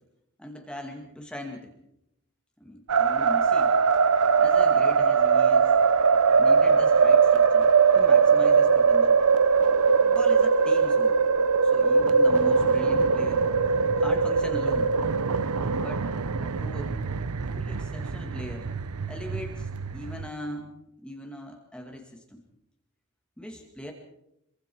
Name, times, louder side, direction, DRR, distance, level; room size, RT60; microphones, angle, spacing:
voice 1, 0.4-1.8 2.6-3.8 4.4-5.8 6.4-9.2 10.0-11.2 11.6-13.5 14.0-14.9 15.8-16.1 16.4-17.0 17.2-18.7 19.1-20.7 21.0-22.4 23.4-23.9, equal, 5° left, 2 dB, 2.2 m, -40 dB
sound 1, 2.9-20.3, right 5 dB, 85° right, 0.7 m, -21 dB
25.5 x 23.5 x 4.6 m, 0.80 s
head